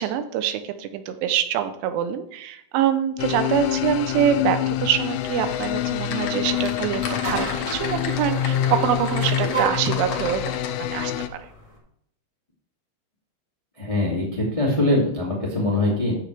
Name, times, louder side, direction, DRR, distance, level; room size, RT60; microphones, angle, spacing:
voice 1, 0.0-10.4 10.8-11.1, right 9 dB, 80° right, 9 dB, 3.1 m, -25 dB
sound 1, 3.2-11.3, left 11 dB, 85° left, 3.2 m, -26 dB
Typing, 5.5-10.7, left 6 dB, 70° left, 2.0 m, -35 dB
sound 2, 6.5-11.8, right 2 dB, 25° right, 0.9 m, -33 dB
voice 2, 13.8-16.1, left 2 dB, 40° left, -4 dB, 0.4 m, -22 dB
13.0 x 7.7 x 3.4 m, 0.73 s
omnidirectional pair, 5.6 m